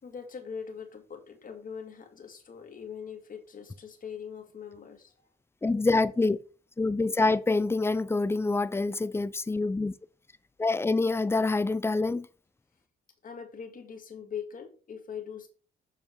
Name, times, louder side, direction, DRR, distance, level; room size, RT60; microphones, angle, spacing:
voice 1, 0.0-5.1 13.2-15.5, left 7 dB, 45° left, 2.1 m, -42 dB
voice 2, 5.6-6.4 6.8-9.9 10.6-12.3, left 3 dB, 10° left, 0.5 m, -26 dB
7.3 x 4.8 x 4.7 m
cardioid pair, 90°, 20 cm